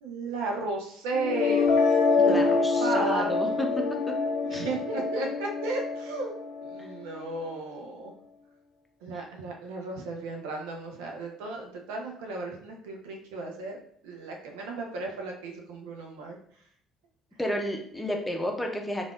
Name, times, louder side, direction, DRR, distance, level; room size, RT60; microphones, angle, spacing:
voice 1, 0.0-1.8 2.3-3.3 4.4-6.3 6.7-8.1 9.0-13.8 14.0-16.4, right 3 dB, 70° right, 1 dB, 0.6 m, -34 dB
sound 1, 1.1-7.1, left 4 dB, 65° left, 0.5 m, -26 dB
voice 2, 2.2-3.7 4.5-4.7 6.8-6.9 17.4-19.1, left 1 dB, 5° left, 1 dB, 0.6 m, -31 dB
3.4 x 2.4 x 2.3 m, 0.63 s
figure-of-eight pair, 50°, 0 cm